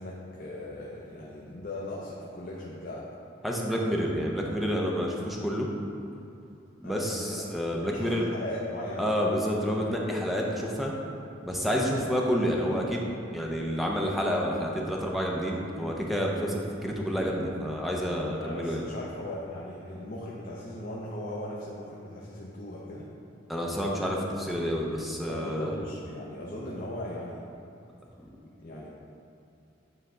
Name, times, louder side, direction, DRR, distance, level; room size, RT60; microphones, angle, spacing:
voice 1, 0.0-3.0 6.8-7.4 7.8-9.1 18.4-23.1 25.3-27.5 28.6-28.9, left 1 dB, 50° left, -4 dB, 0.6 m, -38 dB
voice 2, 3.4-5.7 6.8-8.3 9.0-10.9 11.4-18.8 23.5-25.7, equal, ahead, -2 dB, 0.6 m, -29 dB
9.1 x 3.4 x 3.7 m, 2.7 s
head